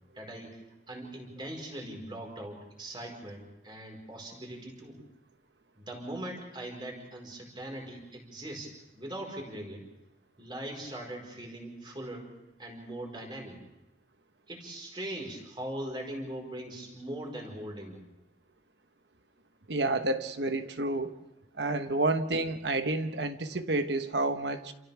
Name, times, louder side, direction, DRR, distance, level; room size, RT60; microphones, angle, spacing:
voice 1, 0.1-5.0 5.8-9.8 10.4-12.3 12.6-13.6 14.5-18.0, right 1 dB, 25° right, 0 dB, 4.8 m, -41 dB
voice 2, 19.7-21.2 21.6-24.7, right 2 dB, 85° right, 8 dB, 1.3 m, -29 dB
29.0 x 27.5 x 3.6 m, 0.96 s
head